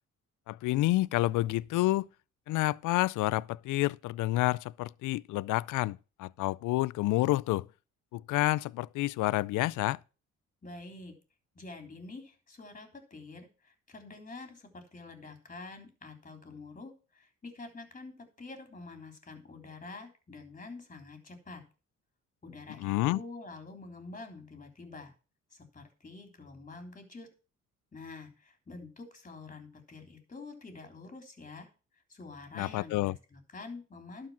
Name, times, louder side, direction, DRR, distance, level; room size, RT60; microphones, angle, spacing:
voice 1, 0.5-2.1 2.5-7.7 8.1-10.0 22.8-23.2 32.5-33.2, left 17 dB, 80° left, 0.5 m, -29 dB
voice 2, 10.6-11.2 11.6-21.6 22.4-25.1 25.5-27.3 27.9-31.7 32.1-34.3, left 3 dB, 25° left, 3.5 m, -47 dB
11.5 x 4.9 x 7.2 m
cardioid pair, 90°, 30 cm